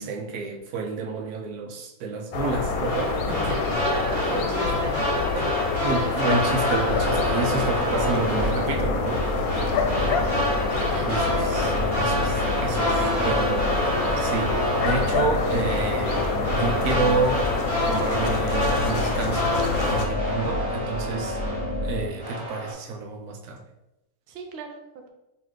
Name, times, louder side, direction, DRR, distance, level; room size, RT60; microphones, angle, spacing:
voice 1, 0.0-3.5 4.4-4.5 5.3-5.5 5.8-9.2 11.1-17.4 17.8-21.4 21.8-23.6, right 4 dB, 80° right, 2 dB, 1.1 m, -30 dB
sound 1, 2.3-20.0, left 4 dB, 75° left, 1.0 m, -27 dB
sound 2, 2.8-21.9 22.2-22.7, equal, 25° right, 1.4 m, -29 dB
voice 2, 3.4-6.6 6.9-7.1 7.6-7.7 9.6-10.4 10.9-11.1 24.3-25.1, right 3 dB, 60° right, 3 dB, 0.7 m, -37 dB
sound 3, 6.8-22.1, left 1 dB, 10° right, 0.6 m, -30 dB
3.8 x 3.1 x 3.1 m, 0.94 s
omnidirectional pair, 1.6 m